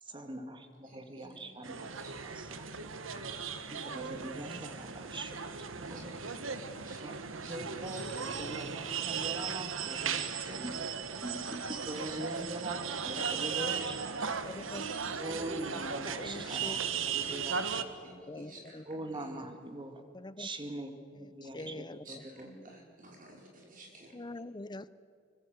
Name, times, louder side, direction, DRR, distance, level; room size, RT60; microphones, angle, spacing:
voice 1, 0.0-2.7 3.2-3.4 3.7-6.1 7.0-10.9 11.2-14.1 15.1-17.9 18.9-20.0 20.4-22.5, right 1 dB, 25° right, 6 dB, 2.2 m, -43 dB
voice 2, 0.8-2.3 2.6-2.8 5.8-8.3 11.3-11.7 12.1-12.5 17.7-19.4 21.6-24.2, right 1 dB, 45° right, 0 dB, 4.9 m, -54 dB
sound 1, 1.6-17.8, right 6 dB, 85° right, 1.6 m, -37 dB
voice 3, 14.4-15.1 15.7-16.8 18.3-18.8 20.1-20.5 21.4-22.0 24.1-24.9, left 2 dB, 20° left, 16 dB, 0.7 m, -44 dB
25.5 x 24.5 x 8.0 m, 2.2 s
head